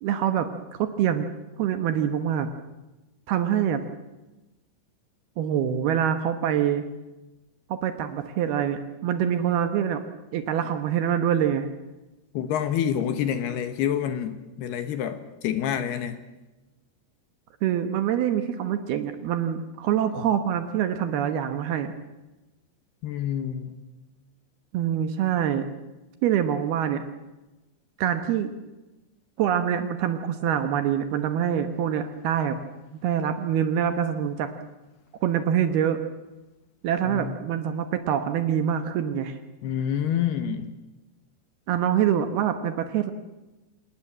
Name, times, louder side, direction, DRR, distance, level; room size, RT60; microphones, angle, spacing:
voice 1, 0.0-1.3 1.6-2.5 3.3-3.8 5.4-6.9 7.7-10.0 10.3-11.7 17.6-21.9 24.7-25.7 26.2-27.0 28.0-28.5 29.4-32.6 32.9-34.5 35.2-36.0 36.8-39.4 41.7-43.1, right 9 dB, 70° right, 9 dB, 2.7 m, -25 dB
voice 2, 12.3-15.2 15.4-16.2 23.0-23.8 37.1-37.4 39.6-40.7, left 9 dB, 70° left, 10 dB, 2.9 m, -27 dB
26.5 x 19.5 x 7.5 m, 1.1 s
omnidirectional pair, 5.4 m